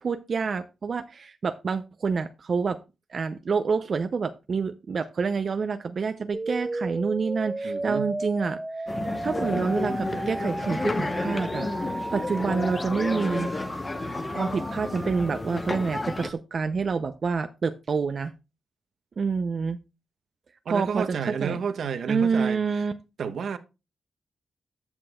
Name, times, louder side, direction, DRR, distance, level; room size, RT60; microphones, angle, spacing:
voice 1, 0.0-2.8 3.1-8.9 9.2-13.5 14.3-18.3 19.2-19.8 20.7-21.0 21.4-21.6 22.1-22.9, right 5 dB, 55° right, 0.5 m, -27 dB
sound 1, 6.3-16.3, right 2 dB, 15° right, 0.7 m, -35 dB
voice 2, 7.6-8.2 20.7-22.6 23.2-23.6, right 6 dB, 75° right, 0.9 m, -30 dB
sound 2, 8.9-16.3, left 2 dB, 30° left, 0.9 m, -31 dB
14.0 x 6.0 x 2.3 m
cardioid pair, 80°, 0 cm